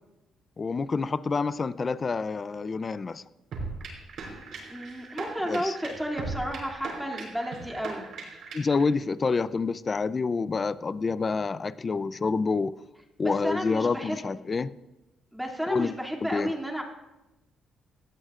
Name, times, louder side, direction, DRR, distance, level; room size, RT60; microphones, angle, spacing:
voice 1, 0.6-3.2 5.5-5.8 8.5-12.7 13.2-14.7 15.7-15.9 16.2-16.5, left 4 dB, 35° left, 16 dB, 0.5 m, -28 dB
sound 1, 3.5-8.8, right 4 dB, 65° right, 5.7 m, -38 dB
voice 2, 4.7-8.1 13.2-14.3 15.3-16.8, equal, ahead, 0 dB, 2.6 m, -32 dB
19.0 x 14.5 x 2.5 m, 1.0 s
cardioid pair, 90°, 0 cm